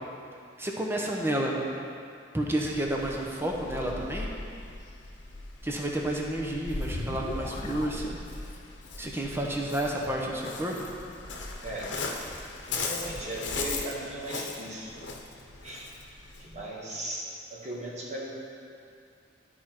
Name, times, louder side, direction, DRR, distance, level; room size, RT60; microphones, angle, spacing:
voice 1, 0.6-1.7 2.3-4.3 5.6-8.2 9.0-10.9, right 1 dB, 15° right, -1 dB, 0.9 m, -30 dB
Waves surf, 2.7-16.6, left 3 dB, 85° left, 0.9 m, -39 dB
sound 1, 6.0-8.7, left 2 dB, 35° left, 0.4 m, -38 dB
voice 2, 11.6-11.9 12.7-14.9 15.6-15.9 16.4-18.3, right 1 dB, 40° right, -4 dB, 1.6 m, -37 dB
12.5 x 4.6 x 4.4 m, 2.4 s
head